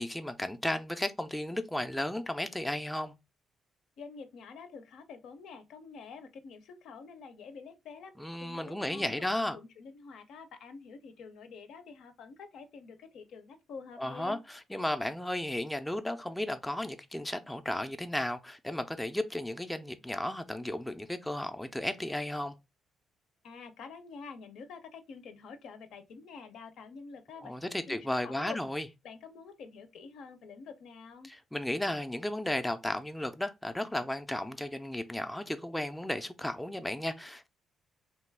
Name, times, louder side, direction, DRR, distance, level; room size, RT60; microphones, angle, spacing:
voice 1, 0.0-3.1 8.2-9.6 14.0-22.6 27.4-28.9 31.2-37.5, left 1 dB, 5° left, 0.4 m, -34 dB
voice 2, 4.0-8.1 8.4-14.4 23.4-28.6 29.0-31.3, left 5 dB, 75° left, 0.5 m, -48 dB
2.9 x 2.3 x 3.3 m
cardioid pair, 90°, 0 cm